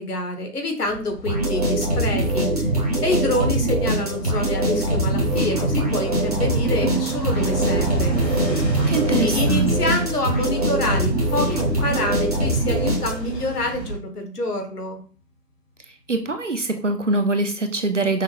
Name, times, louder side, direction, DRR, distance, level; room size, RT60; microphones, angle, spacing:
voice 1, 0.0-2.7 3.0-8.2 9.1-15.0, left 2 dB, 65° left, 5 dB, 1.3 m, -26 dB
sound 1, 0.9-14.0, right 3 dB, 90° left, 1.3 m, -31 dB
sound 2, 1.2-13.4, right 1 dB, 25° right, 0.9 m, -23 dB
sound 3, 6.8-12.2, right 7 dB, 50° left, 1.0 m, -36 dB
voice 2, 8.9-10.1 16.1-18.2, right 3 dB, 50° right, 6 dB, 0.5 m, -23 dB
5.6 x 2.2 x 2.9 m, 0.41 s
figure-of-eight pair, 160°, 49 cm